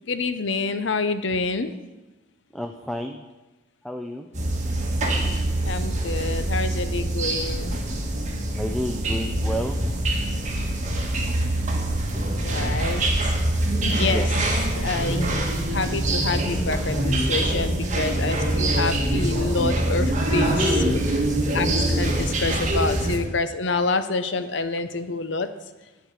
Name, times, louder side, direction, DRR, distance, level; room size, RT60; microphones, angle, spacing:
voice 1, 0.1-1.7 5.6-7.8 12.4-13.0 13.8-14.3 14.8-21.0 21.5-25.5, left 3 dB, 65° left, 11 dB, 0.7 m, -27 dB
voice 2, 2.5-3.2 3.8-4.3 8.5-9.8 14.1-14.3, equal, ahead, 4 dB, 0.4 m, -30 dB
sound 1, 4.3-23.2, right 1 dB, 35° right, 1.5 m, -24 dB
11.5 x 4.7 x 8.1 m, 1.1 s
head